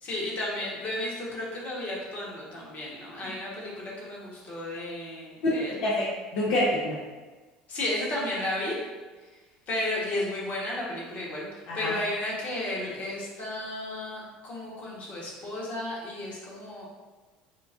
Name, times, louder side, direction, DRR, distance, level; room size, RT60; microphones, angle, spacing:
voice 1, 0.0-5.8 7.7-8.7 9.7-11.5 11.7-16.8, left 1 dB, 50° left, -5 dB, 1.3 m, -33 dB
voice 2, 5.8-7.0 11.7-12.0, left 1 dB, 70° left, -7 dB, 0.8 m, -27 dB
5.0 x 2.3 x 2.6 m, 1.3 s
supercardioid pair, 80°, 3 cm